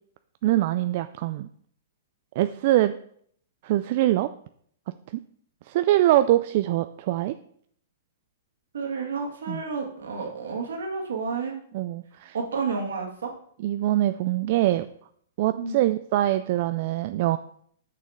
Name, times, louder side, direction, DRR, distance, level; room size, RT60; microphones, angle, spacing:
voice 1, 0.4-1.5 2.4-2.9 3.6-4.3 5.7-7.3 9.5-9.6 11.7-12.3 13.6-14.9 15.4-17.4, right 14 dB, 50° right, 11 dB, 0.3 m, -23 dB
voice 2, 8.7-11.6 12.3-13.3 15.6-15.8, right 4 dB, 75° right, 2 dB, 1.8 m, -30 dB
6.6 x 6.3 x 3.6 m, 0.62 s
hypercardioid pair, 120°, 0 cm